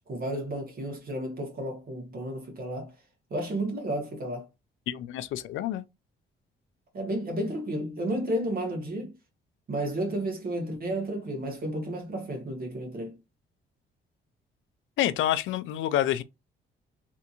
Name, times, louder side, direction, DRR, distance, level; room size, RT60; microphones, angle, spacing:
voice 1, 0.1-2.9 3.3-4.5 6.9-9.1 9.7-13.1, right 1 dB, 50° right, 1.5 m, -32 dB
voice 2, 4.9-5.8 15.0-16.2, left 12 dB, 80° left, 0.4 m, -28 dB
3.4 x 2.8 x 2.6 m
cardioid pair, 90°, 20 cm